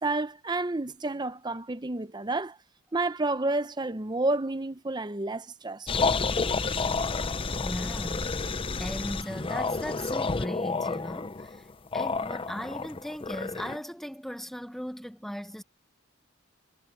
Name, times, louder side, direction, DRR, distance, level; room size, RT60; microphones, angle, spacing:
voice 1, 0.0-2.6 2.9-6.1, right 2 dB, 20° right, 0.7 m, -30 dB
sound 1, 5.9-13.8, left 4 dB, 25° left, 0.6 m, -30 dB
voice 2, 7.6-8.3 8.8-11.7 11.9-15.6, equal, ahead, 1.2 m, -38 dB
head